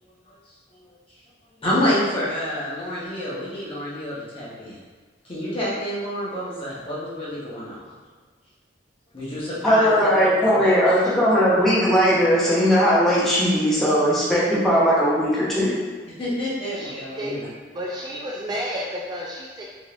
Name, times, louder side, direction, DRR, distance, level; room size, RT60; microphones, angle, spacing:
voice 1, 1.6-4.8 5.2-7.8 9.1-11.3 16.2-17.5, left 1 dB, 30° left, -8 dB, 1.1 m, -28 dB
voice 2, 9.6-15.8, equal, ahead, -9 dB, 0.8 m, -19 dB
voice 3, 16.7-17.4 17.7-19.6, equal, 25° right, -3 dB, 0.3 m, -32 dB
3.7 x 3.0 x 2.4 m, 1.5 s
head